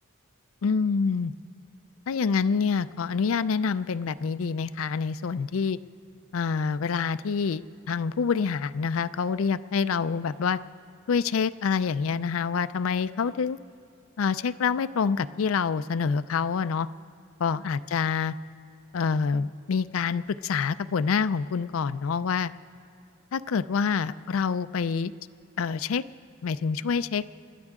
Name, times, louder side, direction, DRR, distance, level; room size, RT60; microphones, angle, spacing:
voice 1, 0.6-1.3 2.1-5.8 6.3-10.6 11.1-13.6 14.2-16.9 17.4-18.3 18.9-22.5 23.3-25.1 25.6-26.0 26.4-27.2, left 5 dB, 75° left, 14 dB, 0.4 m, -26 dB
29.0 x 12.5 x 3.6 m, 2.8 s
head